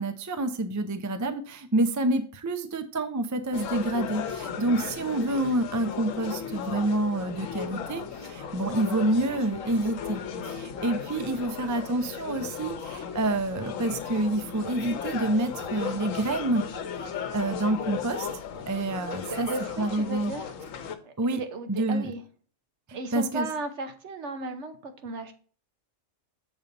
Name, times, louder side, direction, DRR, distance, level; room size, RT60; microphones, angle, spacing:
voice 1, 0.0-10.2 10.6-16.6 17.3-18.3 18.7-19.5 19.8-20.3 21.2-21.4 21.7-22.1 23.1-23.5, right 2 dB, 30° right, 8 dB, 0.3 m, -28 dB
sound 1, 3.5-21.0, left 7 dB, 90° left, 1.1 m, -36 dB
voice 2, 19.2-20.5 21.3-22.2 22.9-25.3, right 3 dB, 65° right, 7 dB, 1.2 m, -35 dB
7.1 x 4.0 x 5.3 m, 0.42 s
omnidirectional pair, 1.3 m